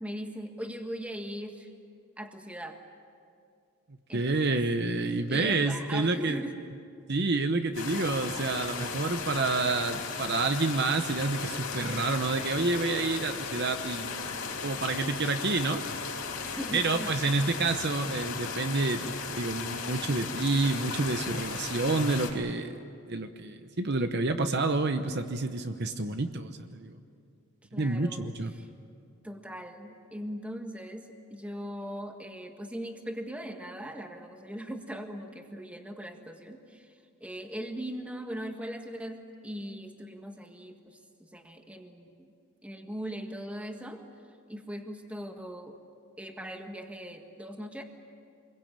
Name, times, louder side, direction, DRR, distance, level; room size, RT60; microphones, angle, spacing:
voice 1, 0.0-1.7 2.2-2.8 4.1-4.6 5.3-6.5 16.4-17.5 27.7-28.7 29.2-36.9 37.2-42.3 42.6-44.0 44.5-45.8 46.2-47.8, equal, 5° right, 4 dB, 1.7 m, -40 dB
voice 2, 4.1-6.4 7.1-15.8 16.7-27.0 27.7-28.5, right 3 dB, 50° right, 7 dB, 0.9 m, -29 dB
sound 1, 7.7-22.3, left 5 dB, 75° left, 4.8 m, -36 dB
27.0 x 22.0 x 8.9 m, 2.4 s
head